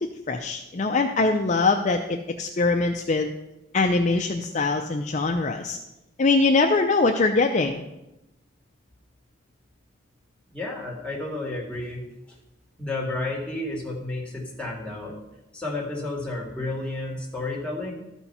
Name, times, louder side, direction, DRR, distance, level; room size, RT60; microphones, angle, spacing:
voice 1, 0.0-3.3 3.7-5.8 6.2-7.8, left 3 dB, 40° left, 4 dB, 0.5 m, -23 dB
voice 2, 10.5-12.1 12.8-15.2 15.5-17.9, left 2 dB, 5° left, -3 dB, 2.1 m, -31 dB
13.0 x 4.5 x 5.5 m, 0.92 s
head